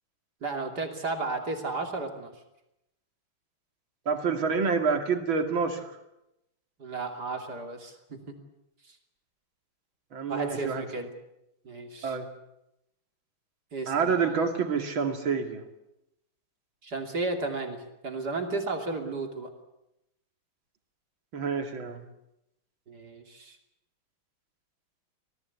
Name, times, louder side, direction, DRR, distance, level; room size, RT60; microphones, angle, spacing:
voice 1, 0.4-2.3 6.8-8.4 8.9-9.0 10.3-11.1 11.6-12.2 13.7-14.3 16.8-19.5 22.9-23.6, right 3 dB, 50° right, 3 dB, 3.4 m, -34 dB
voice 2, 4.1-5.9 10.1-10.8 12.0-12.3 13.9-15.6 21.3-22.0, right 5 dB, 70° right, 5 dB, 3.1 m, -27 dB
26.5 x 18.5 x 8.3 m, 0.88 s
omnidirectional pair, 2.2 m